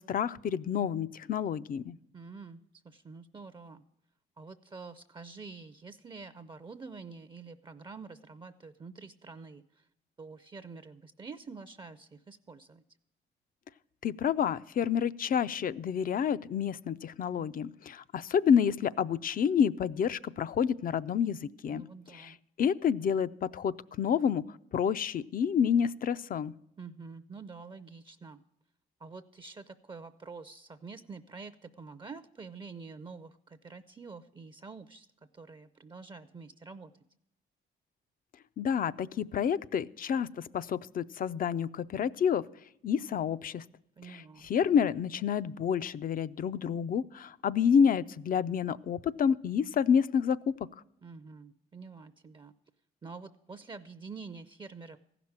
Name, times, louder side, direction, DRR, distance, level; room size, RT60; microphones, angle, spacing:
voice 1, 0.0-2.0 14.0-21.9 22.1-24.4 24.7-26.5 38.6-42.4 42.8-43.6 44.1-50.5, left 7 dB, 45° left, 16 dB, 0.4 m, -29 dB
voice 2, 2.1-2.6 2.8-3.8 4.4-9.9 10.2-12.8 21.7-22.4 26.8-28.4 29.0-35.1 35.3-36.9 44.0-44.5 51.0-52.5 53.0-55.0, right 4 dB, 25° right, 12 dB, 0.5 m, -47 dB
15.0 x 5.9 x 8.7 m, 0.77 s
cardioid pair, 90°, 20 cm